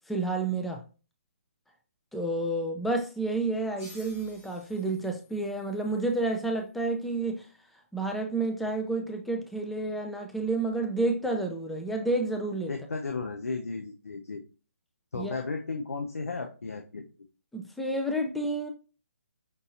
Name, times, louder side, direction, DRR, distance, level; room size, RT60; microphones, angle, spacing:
voice 1, 0.1-0.8 2.1-7.5 7.9-12.7 15.1-15.4 17.5-18.7, right 2 dB, ahead, 2 dB, 0.3 m, -30 dB
sound 1, 3.8-7.0, left 1 dB, 25° left, 1.4 m, -55 dB
voice 2, 12.7-14.4 15.1-17.1, left 4 dB, 80° left, 4 dB, 0.6 m, -34 dB
5.3 x 2.7 x 2.5 m, 0.35 s
figure-of-eight pair, 145°, 8 cm